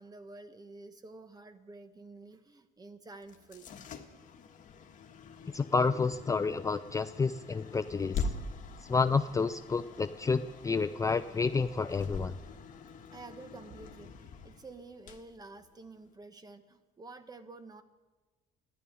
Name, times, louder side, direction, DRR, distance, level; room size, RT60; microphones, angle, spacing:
voice 1, 0.0-3.8 13.1-17.8, right 3 dB, 20° right, 10 dB, 1.2 m, -50 dB
sound 1, 3.2-16.2, left 4 dB, 50° left, 1.6 m, -44 dB
voice 2, 5.5-8.3 8.9-12.3, left 4 dB, 20° left, 11 dB, 0.4 m, -29 dB
14.0 x 11.0 x 9.5 m, 1.2 s
cardioid pair, 110°, 17 cm